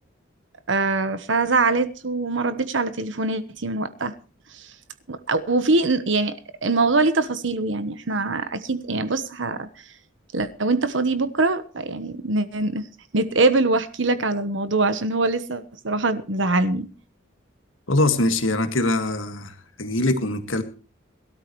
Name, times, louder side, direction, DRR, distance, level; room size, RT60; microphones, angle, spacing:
voice 1, 0.7-4.1 4.5-4.7 5.1-6.3 6.6-9.8 10.3-12.9 13.1-16.9, right 3 dB, 70° right, 1.1 m, -23 dB
voice 2, 17.9-19.5 19.8-20.6, left 2 dB, 85° left, 1.9 m, -22 dB
21.5 x 13.0 x 3.1 m
head